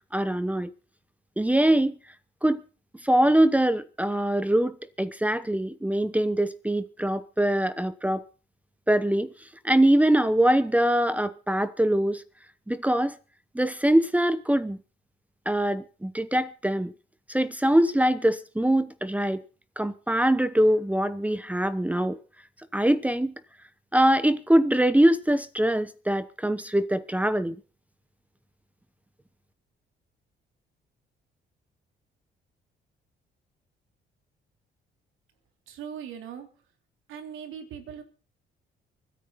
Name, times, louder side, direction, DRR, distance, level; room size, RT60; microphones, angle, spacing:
voice 1, 0.1-0.7 1.4-2.0 2.4-2.6 3.0-8.2 8.9-9.3 9.6-12.2 12.7-13.2 13.5-14.8 15.5-16.9 17.3-19.4 19.8-22.2 22.7-23.3 23.9-27.6, right 1 dB, 5° right, 0.9 m, -23 dB
voice 2, 35.7-36.5 37.1-38.0, right 8 dB, 85° right, 3.4 m, -39 dB
24.5 x 9.8 x 4.1 m
cardioid pair, 90°, 20 cm